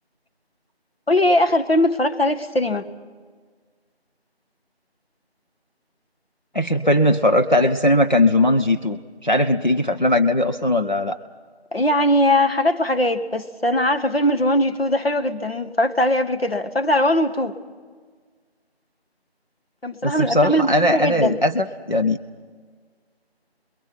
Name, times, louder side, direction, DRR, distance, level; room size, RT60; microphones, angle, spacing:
voice 1, 1.1-2.9 11.7-17.6 19.8-21.4, left 1 dB, 65° left, 8 dB, 1.6 m, -20 dB
voice 2, 6.5-11.2 20.0-22.2, left 1 dB, 45° left, 5 dB, 0.7 m, -19 dB
29.0 x 22.0 x 5.8 m, 1.5 s
figure-of-eight pair, 180°, 32 cm